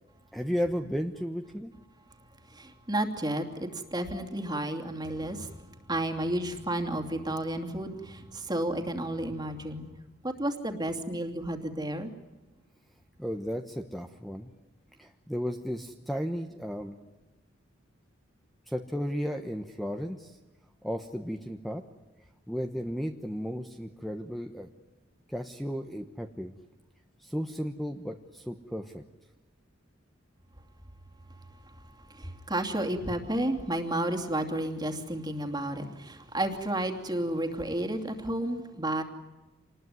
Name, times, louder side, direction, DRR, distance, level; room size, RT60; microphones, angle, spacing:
voice 1, 0.3-1.7 13.2-14.5 15.0-17.0 18.7-20.4 20.8-21.8 22.5-24.7 25.3-26.5 27.2-29.0, equal, ahead, 5 dB, 1.1 m, -34 dB
voice 2, 2.6-5.5 5.9-9.9 10.2-12.1 32.1-39.0, right 1 dB, 20° right, 4 dB, 2.7 m, -32 dB
27.5 x 20.5 x 9.6 m, 1.1 s
head